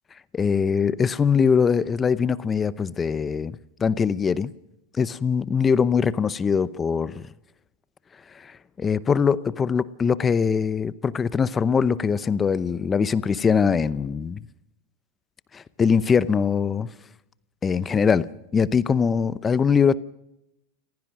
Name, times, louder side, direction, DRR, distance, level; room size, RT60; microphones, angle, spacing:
voice 1, 0.3-4.5 5.0-7.2 8.3-14.4 15.5-16.9 17.6-20.0, left 6 dB, 20° left, 0.7 m, -22 dB
28.0 x 15.5 x 6.1 m
supercardioid pair, 130°, 0 cm